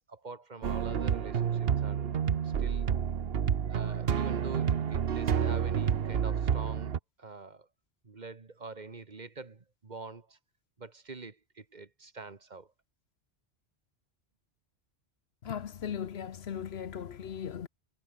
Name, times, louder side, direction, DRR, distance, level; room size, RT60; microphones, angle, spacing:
voice 1, 0.0-2.9 3.7-7.7 8.0-10.4 10.8-12.7, right 3 dB, 40° right, 1.5 m, -45 dB
sound 1, 0.6-7.0, right 8 dB, 65° right, 1.1 m, -29 dB
voice 2, 15.4-17.7, left 8 dB, 70° left, 1.1 m, -38 dB
omnidirectional pair, 1.1 m